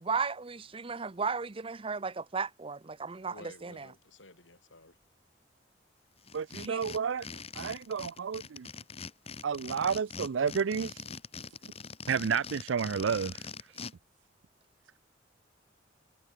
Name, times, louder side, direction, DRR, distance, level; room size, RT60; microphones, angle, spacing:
voice 1, 0.0-3.9 6.6-6.8 9.9-10.0, right 5 dB, 30° right, 0.7 m, -35 dB
voice 2, 3.3-5.0 7.2-7.4, left 2 dB, 85° left, 7.5 m, -54 dB
sound 1, 6.2-13.9, left 5 dB, 35° left, 1.8 m, -43 dB
voice 3, 6.3-7.3 7.6-8.7 9.4-11.0 12.1-13.8, right 6 dB, 90° right, 0.5 m, -31 dB
head